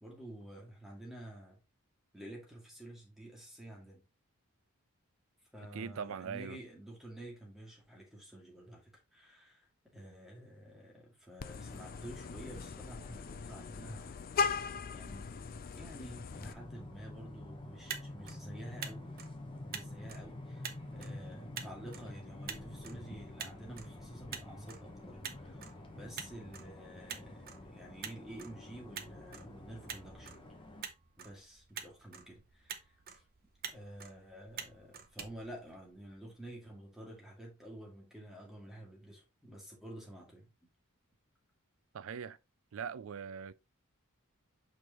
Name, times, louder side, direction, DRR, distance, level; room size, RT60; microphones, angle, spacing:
voice 1, 0.0-1.6 2.1-4.1 5.5-9.7 9.9-14.7 14.9-15.4 15.7-19.2 19.7-30.3 31.2-33.2 33.7-40.5, right 1 dB, ahead, 2.2 m, -50 dB
voice 2, 5.7-6.6 41.9-42.4 42.7-43.5, right 6 dB, 65° right, 0.4 m, -41 dB
Vehicle horn car horn honking, 11.4-16.5, left 5 dB, 40° left, 0.5 m, -39 dB
sound 1, 16.3-30.8, left 1 dB, 25° left, 1.1 m, -48 dB
Motor vehicle (road), 17.7-36.2, right 7 dB, 45° right, 0.8 m, -48 dB
6.2 x 5.0 x 3.0 m
head